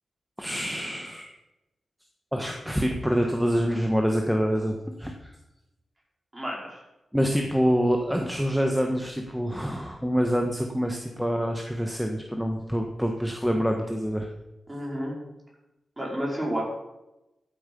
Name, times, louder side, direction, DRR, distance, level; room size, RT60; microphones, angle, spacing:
voice 1, 0.4-1.3 2.3-5.2 7.1-14.3, equal, ahead, 3 dB, 1.4 m, -26 dB
voice 2, 6.3-6.8 14.7-15.1 16.0-16.6, equal, 20° right, -2 dB, 5.0 m, -30 dB
13.5 x 9.0 x 5.4 m, 0.95 s
cardioid pair, 80°, 0 cm